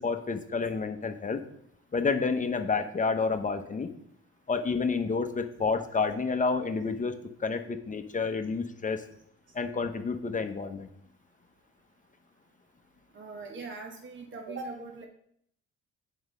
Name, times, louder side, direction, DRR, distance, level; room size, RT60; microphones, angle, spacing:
voice 1, 0.0-1.4 1.9-3.9 4.5-9.0 9.5-10.9, left 4 dB, 25° left, 8 dB, 0.9 m, -29 dB
voice 2, 13.1-15.1, right 3 dB, 40° right, 2 dB, 1.2 m, -41 dB
7.8 x 5.5 x 5.1 m, 0.70 s
cardioid pair, 90°, 30 cm